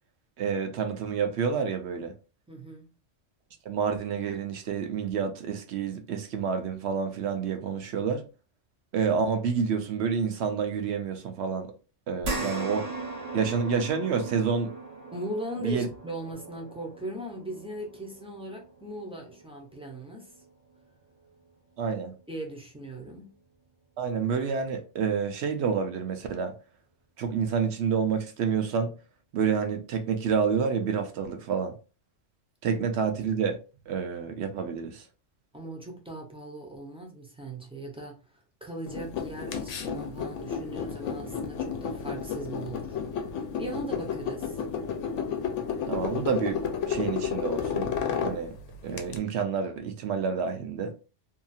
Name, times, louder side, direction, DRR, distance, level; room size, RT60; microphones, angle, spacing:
voice 1, 0.4-2.1 3.7-8.3 8.9-11.7 12.1-12.8 13.3-14.7 15.6-15.9 21.8-22.1 24.0-26.5 27.2-28.9 29.3-31.7 32.6-33.6 33.9-35.0 45.9-46.6 46.9-47.9 48.2-48.5 48.8-51.0, right 6 dB, 65° right, 0.8 m, -28 dB
voice 2, 2.5-2.9 15.1-20.4 22.3-23.4 35.5-43.0 43.6-44.6, right 1 dB, 5° right, 0.5 m, -39 dB
sound 1, 12.2-20.8 21.3-21.4 22.8-22.9, right 2 dB, 90° right, 1.3 m, -39 dB
sound 2, 38.9-49.2, left 6 dB, 80° left, 0.9 m, -32 dB
2.8 x 2.4 x 2.6 m
omnidirectional pair, 1.3 m